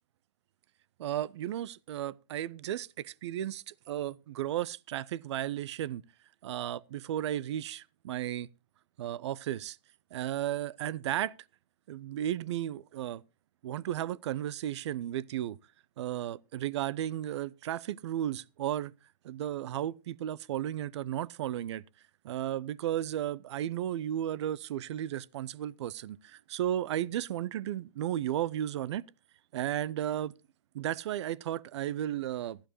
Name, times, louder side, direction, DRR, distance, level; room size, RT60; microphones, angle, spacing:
voice 1, 1.0-6.0 6.4-8.5 9.0-9.8 10.1-11.3 11.9-13.2 13.6-15.6 16.0-18.9 19.2-21.8 22.2-29.0 29.5-30.3 30.7-32.6, right 12 dB, 40° right, 0.5 m, -34 dB
15.0 x 11.5 x 3.0 m
figure-of-eight pair, 120°, 21 cm